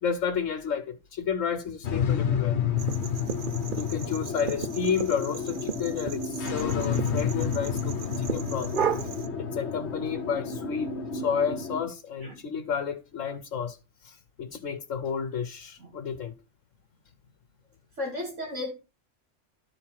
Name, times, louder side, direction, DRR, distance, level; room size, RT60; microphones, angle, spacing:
voice 1, 0.0-2.6 3.8-8.7 9.4-13.8 14.0-16.3, left 6 dB, 90° left, 1.2 m, -31 dB
sound 1, 1.8-11.8, left 6 dB, 65° left, 1.2 m, -30 dB
sound 2, 2.8-9.3, right 8 dB, 50° right, 0.8 m, -35 dB
voice 2, 18.0-18.7, left 2 dB, 75° right, 2.9 m, -34 dB
12.0 x 4.7 x 5.6 m
omnidirectional pair, 1.3 m